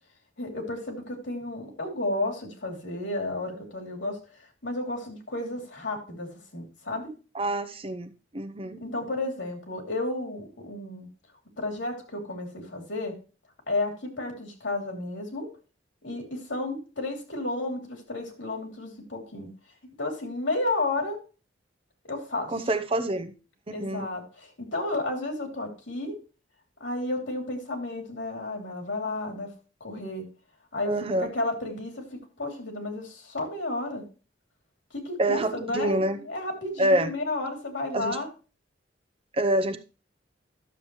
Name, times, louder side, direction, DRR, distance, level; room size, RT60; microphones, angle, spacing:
voice 1, 0.4-4.2 4.6-7.1 8.8-11.1 11.6-13.1 13.7-15.5 16.0-19.5 20.0-21.2 22.1-22.5 23.7-26.2 26.8-29.5 29.8-30.3 30.7-30.9 31.2-34.0 34.9-38.3, left 2 dB, 90° left, 2 dB, 2.9 m, -32 dB
voice 2, 7.3-8.8 22.5-23.3 23.7-24.1 30.9-31.3 35.2-36.2 36.8-37.1 37.9-38.2 39.3-39.8, right 1 dB, 30° right, 10 dB, 0.7 m, -26 dB
11.5 x 7.3 x 3.1 m, 0.34 s
head